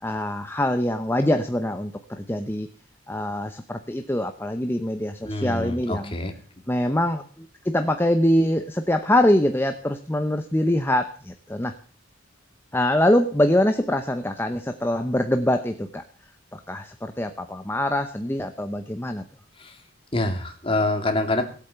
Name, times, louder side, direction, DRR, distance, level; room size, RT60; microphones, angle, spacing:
voice 1, 0.0-2.7 3.1-6.1 6.7-11.7 12.7-16.0 16.5-19.2, left 1 dB, 10° left, 7 dB, 0.7 m, -24 dB
voice 2, 5.2-6.4 19.6-19.8 20.1-21.4, left 2 dB, 25° left, 5 dB, 2.3 m, -26 dB
18.0 x 8.5 x 6.8 m, 0.42 s
head